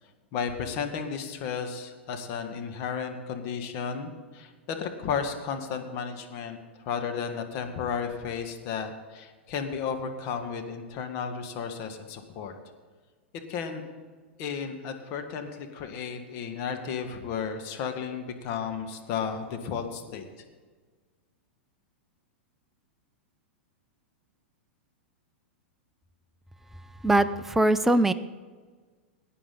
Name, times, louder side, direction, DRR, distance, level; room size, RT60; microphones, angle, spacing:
voice 1, 0.3-6.6 6.8-12.5 13.5-13.8 14.4-20.3, left 6 dB, 45° left, 6 dB, 1.6 m, -33 dB
voice 2, 27.0-28.1, right 1 dB, 5° right, 11 dB, 0.4 m, -21 dB
18.0 x 9.4 x 3.9 m, 1.5 s
figure-of-eight pair, 95°, 6 cm